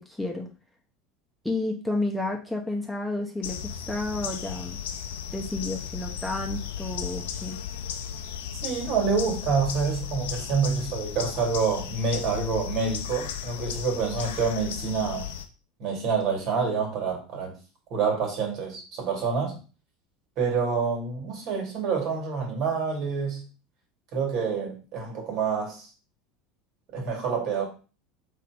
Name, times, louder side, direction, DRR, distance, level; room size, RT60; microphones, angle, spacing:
voice 1, 0.1-0.5 1.4-3.6 3.9-4.8 5.3-7.6, left 2 dB, 5° left, 0 dB, 0.9 m, -31 dB
sound 1, 3.4-15.5, left 8 dB, 75° left, 0.6 m, -35 dB
voice 2, 8.6-15.3 15.8-17.6 17.9-19.6 20.4-23.4 24.1-25.9 26.9-27.6, right 5 dB, 55° right, 1 dB, 1.9 m, -27 dB
3.9 x 2.8 x 4.4 m, 0.35 s
hypercardioid pair, 75°, 0 cm